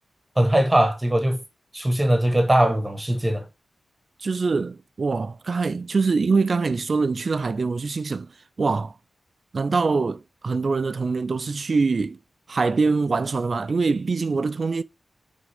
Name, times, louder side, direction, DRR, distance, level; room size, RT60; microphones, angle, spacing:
voice 1, 0.4-1.4 1.7-3.5, right 1 dB, 10° right, 1.2 m, -20 dB
voice 2, 4.2-8.3 8.6-8.9 9.5-12.2 12.5-14.8, right 4 dB, 40° right, 0.4 m, -24 dB
9.1 x 3.6 x 3.4 m
wide cardioid pair, 180°, 0 cm